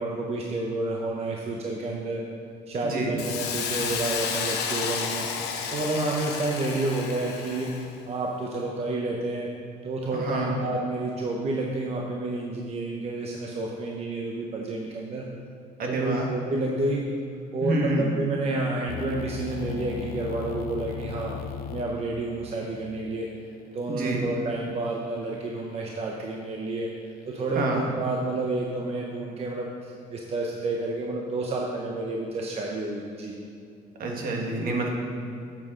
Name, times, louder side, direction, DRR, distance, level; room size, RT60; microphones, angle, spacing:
voice 1, 0.0-2.2 2.7-5.3 5.7-7.7 8.1-9.5 9.8-15.3 15.8-17.0 17.5-21.4 21.7-23.3 23.7-26.9 27.3-33.4, right 2 dB, 40° right, -1 dB, 0.9 m, -30 dB
voice 2, 2.8-3.1 10.1-10.6 15.8-16.3 17.6-18.0 23.9-24.2 27.5-27.8 34.0-34.9, right 2 dB, 60° right, 0 dB, 1.7 m, -28 dB
Hiss, 3.2-7.9, left 6 dB, 80° left, 0.9 m, -31 dB
sound 1, 18.9-24.8, left 7 dB, 60° left, 0.5 m, -38 dB
9.0 x 7.5 x 3.8 m, 2.4 s
cardioid pair, 110°, 17 cm